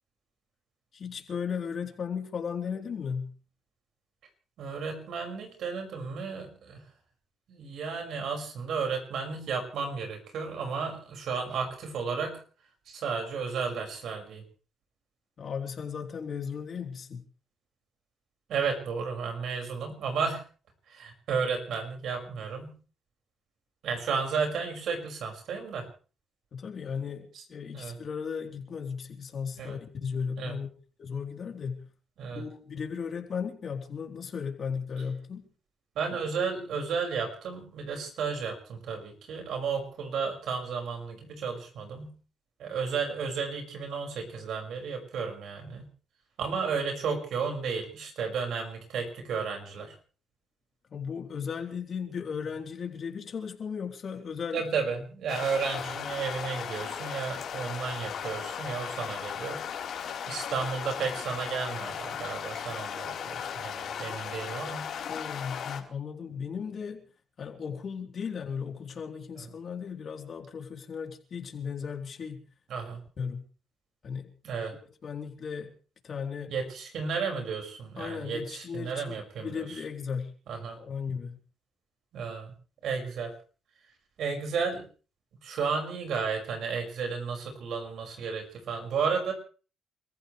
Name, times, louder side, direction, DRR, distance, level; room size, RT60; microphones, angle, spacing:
voice 1, 0.9-3.3 15.4-17.2 26.5-30.7 31.0-31.9 32.4-35.4 50.9-54.6 55.0-55.1 65.1-67.0 67.4-72.4 73.2-73.4 74.0-74.3 75.0-75.7 76.0-76.5 78.0-80.3 80.8-81.4, left 6 dB, 50° left, 2 dB, 3.8 m, -36 dB
voice 2, 4.6-6.8 7.5-12.4 12.9-14.4 18.5-20.4 20.9-22.7 23.8-25.8 27.7-28.0 29.6-29.8 30.4-30.6 32.2-32.4 36.0-42.1 42.6-45.9 46.4-49.9 54.5-59.6 60.3-64.9 72.7-73.0 74.4-74.7 76.5-79.8 80.5-80.8 82.1-82.5 82.8-83.3 84.2-84.8 85.4-89.3, right 5 dB, 70° right, 3 dB, 6.0 m, -33 dB
sound 1, 55.3-65.8, left 8 dB, 65° left, 4.3 m, -36 dB
29.0 x 15.0 x 3.4 m, 0.39 s
cardioid pair, 90°, 0 cm